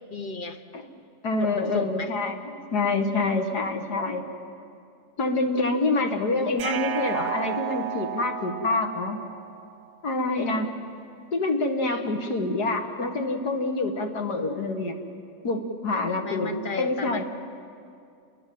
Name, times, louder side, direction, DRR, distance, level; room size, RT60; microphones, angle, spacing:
voice 1, 0.1-0.6 1.4-2.1 15.9-17.2, left 4 dB, 35° left, 7 dB, 1.3 m, -34 dB
voice 2, 1.2-2.3 2.7-4.3 5.2-9.2 10.0-10.7 11.3-15.0 15.4-17.2, left 2 dB, 80° left, 4 dB, 2.6 m, -26 dB
sound 1, 6.6-9.7, right 9 dB, 85° right, 1.4 m, -32 dB
29.0 x 22.5 x 7.8 m, 2.4 s
omnidirectional pair, 1.7 m